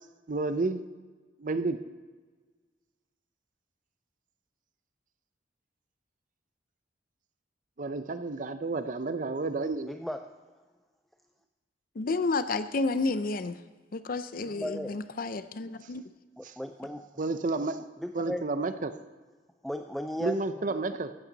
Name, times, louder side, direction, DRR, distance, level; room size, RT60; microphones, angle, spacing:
voice 1, 0.3-0.8 1.4-1.8 7.8-9.9 16.4-16.6 17.2-17.8 18.1-19.0 20.2-21.1, right 3 dB, 45° right, 11 dB, 0.6 m, -31 dB
voice 2, 9.9-10.2 14.4-14.9 16.4-17.3 18.0-18.4 19.6-20.6, equal, ahead, 6 dB, 0.3 m, -36 dB
voice 3, 12.0-13.6 13.9-16.0, left 3 dB, 50° left, 12 dB, 0.5 m, -30 dB
14.0 x 8.7 x 4.0 m, 1.4 s
head